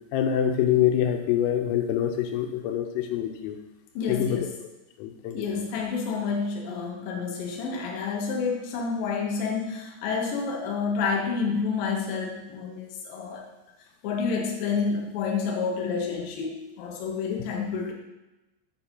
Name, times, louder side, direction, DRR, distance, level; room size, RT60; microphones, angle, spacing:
voice 1, 0.1-3.6 4.1-4.5 5.0-5.4, left 10 dB, 90° left, 5 dB, 3.3 m, -25 dB
voice 2, 3.9-4.6 5.3-13.4 14.0-17.9, left 5 dB, 70° left, -1 dB, 2.2 m, -29 dB
7.3 x 4.9 x 5.4 m, 0.98 s
omnidirectional pair, 5.8 m